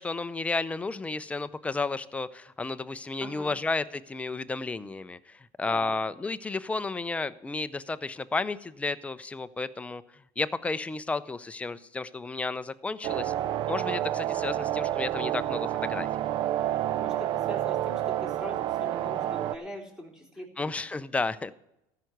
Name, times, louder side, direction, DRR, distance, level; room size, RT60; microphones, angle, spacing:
voice 1, 0.0-10.0 10.4-13.3 13.7-16.1 20.6-21.5, left 3 dB, 10° left, 14 dB, 0.6 m, -32 dB
voice 2, 3.2-3.5 5.7-6.0 16.9-20.7, left 1 dB, 5° right, -1 dB, 3.3 m, -42 dB
sound 1, 13.0-19.6, right 12 dB, 45° right, 0.6 m, -29 dB
14.0 x 5.9 x 7.9 m, 0.83 s
supercardioid pair, 120°, 11 cm